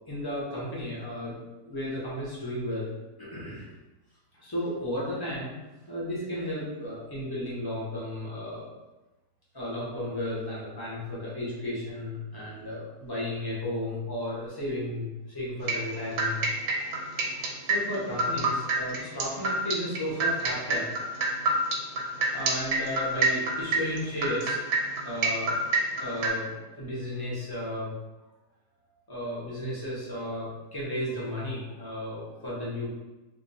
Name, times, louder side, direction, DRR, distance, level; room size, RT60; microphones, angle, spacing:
voice 1, 0.1-2.9 3.2-3.7 4.3-5.5 5.9-8.7 9.5-16.9 17.3-21.1 22.3-24.6 25.0-25.6 26.0-27.9 29.1-32.9, left 1 dB, 25° left, -7 dB, 0.5 m, -34 dB
sound 1, 15.7-26.3, right 3 dB, 80° right, 1.3 m, -26 dB
2.7 x 2.2 x 4.0 m, 1.1 s
omnidirectional pair, 1.8 m